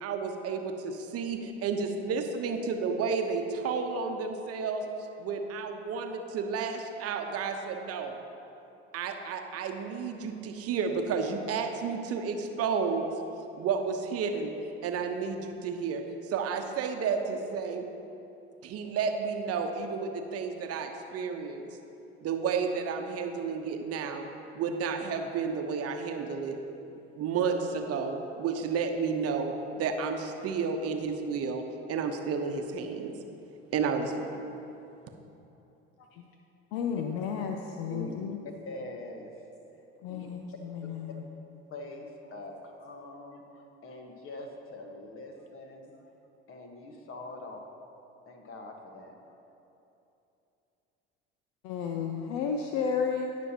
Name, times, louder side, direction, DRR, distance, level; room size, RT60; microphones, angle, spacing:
voice 1, 0.0-4.8 5.2-8.2 8.9-13.1 13.6-14.5 14.8-17.8 18.6-21.7 22.2-24.3 24.5-26.6 27.2-33.1 33.7-34.3, right 5 dB, 45° right, 4 dB, 1.0 m, -31 dB
voice 2, 36.7-38.4 40.0-41.2 51.6-53.4, left 6 dB, 65° left, 3 dB, 0.7 m, -32 dB
voice 3, 38.4-39.4 40.1-40.3 41.7-46.1 46.5-47.6 48.2-49.2, left 2 dB, 40° left, 2 dB, 1.5 m, -43 dB
18.0 x 6.2 x 2.9 m, 2.9 s
figure-of-eight pair, 60°, 33 cm